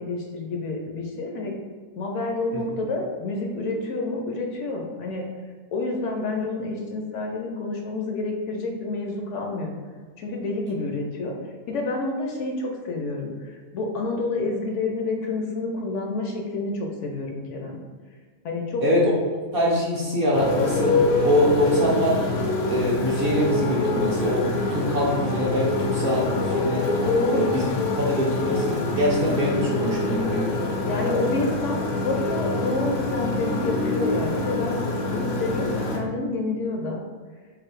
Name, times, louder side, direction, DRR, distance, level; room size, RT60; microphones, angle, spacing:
voice 1, 0.0-1.6 2.0-5.3 5.7-9.7 10.2-11.3 11.7-17.8 18.4-18.8 27.0-27.5 30.8-34.8 35.1-37.0, left 3 dB, 65° left, 1 dB, 0.8 m, -28 dB
voice 2, 18.8-19.1 19.5-22.2 22.7-26.9 27.3-30.5, equal, 55° right, -3 dB, 0.6 m, -24 dB
Motorcycle, 20.3-36.0, left 2 dB, 85° left, 1.2 m, -25 dB
4.0 x 2.6 x 4.5 m, 1.5 s
omnidirectional pair, 1.5 m